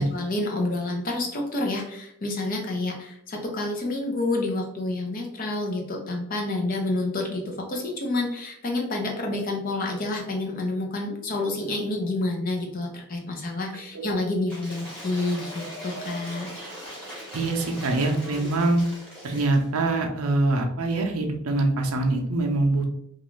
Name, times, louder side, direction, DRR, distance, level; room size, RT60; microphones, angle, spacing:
voice 1, 0.0-16.5, left 2 dB, 40° left, 1 dB, 0.5 m, -29 dB
Cheering / Applause / Crowd, 14.5-19.7, equal, 5° left, 1.1 m, -39 dB
voice 2, 17.3-18.8 19.2-22.9, right 2 dB, 80° right, 3 dB, 0.5 m, -24 dB
2.5 x 2.3 x 3.0 m, 0.74 s
head